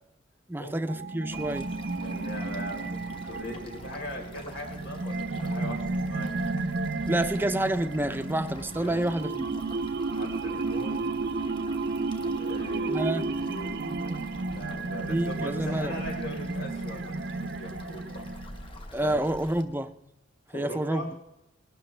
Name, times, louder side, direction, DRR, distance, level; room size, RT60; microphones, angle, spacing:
voice 1, 0.5-1.7 7.1-9.5 12.9-13.2 15.1-15.9 18.9-19.9 20.5-21.0, right 1 dB, 10° right, 0.5 m, -28 dB
sound 1, 0.8-18.8, right 3 dB, 55° right, 0.6 m, -32 dB
sound 2, 1.3-19.6, left 1 dB, 25° left, 1.1 m, -47 dB
voice 2, 2.0-6.3 8.8-9.0 10.1-11.1 12.4-13.7 14.5-17.1 17.4-18.2 19.0-19.2 20.5-21.1, equal, 75° left, 4.1 m, -39 dB
19.5 x 12.0 x 3.3 m
head